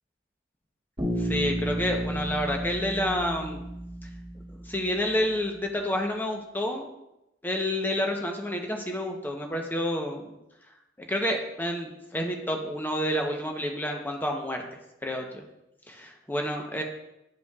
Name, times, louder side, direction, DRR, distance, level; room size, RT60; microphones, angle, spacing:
Bass guitar, 1.0-5.0, right 1 dB, 25° right, 1.9 m, -32 dB
voice 1, 1.2-3.6 4.7-6.9 7.4-10.3 11.0-14.6 15.0-15.4 15.9-16.8, left 1 dB, 10° left, 2 dB, 0.8 m, -29 dB
11.0 x 5.0 x 2.3 m, 0.90 s
head